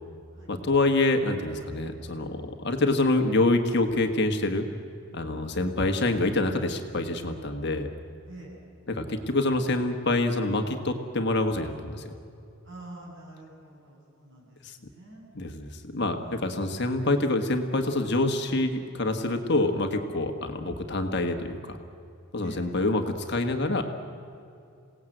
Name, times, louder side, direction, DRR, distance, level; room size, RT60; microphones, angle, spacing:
voice 1, 0.5-4.6 5.1-7.9 8.9-12.0 14.6-14.7 15.3-21.8 22.3-23.8, left 2 dB, 50° left, 5 dB, 1.6 m, -26 dB
voice 2, 8.3-8.6 12.6-14.6 14.9-15.2 16.2-16.5 22.4-22.6, right 1 dB, 60° right, -3 dB, 7.7 m, -46 dB
27.5 x 18.0 x 8.0 m, 2.5 s
head